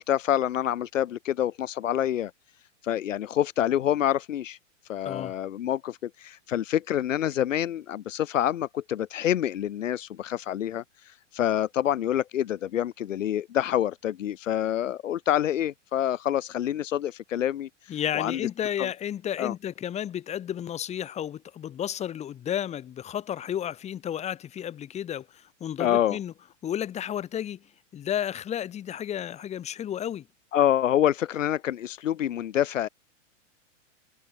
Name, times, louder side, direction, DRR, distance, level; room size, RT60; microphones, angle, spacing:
voice 1, 0.0-2.3 2.8-4.6 4.9-10.8 11.3-17.7 18.1-18.4 18.8-18.9 19.4-19.5 25.8-26.2 30.5-32.9, left 11 dB, 90° left, 1.1 m, -27 dB
voice 2, 17.9-26.3 26.6-27.6 27.9-30.3, left 10 dB, 15° left, 2.5 m, -32 dB
hypercardioid pair, 150°, 38 cm